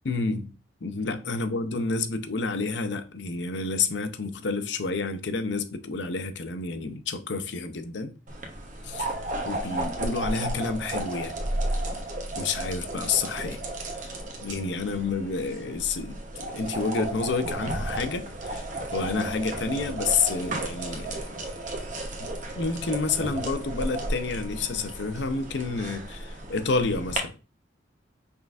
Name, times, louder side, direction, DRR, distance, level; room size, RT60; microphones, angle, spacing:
voice 1, 0.1-0.5 0.8-8.1 8.8-9.1 9.4-11.3 12.4-13.6 14.0-14.1 14.4-18.7 18.9-21.3 22.2-27.3, left 4 dB, 70° left, 0.6 m, -29 dB
sound 1, 8.3-27.2, right 1 dB, 40° right, 0.9 m, -33 dB
5.6 x 3.7 x 2.4 m
head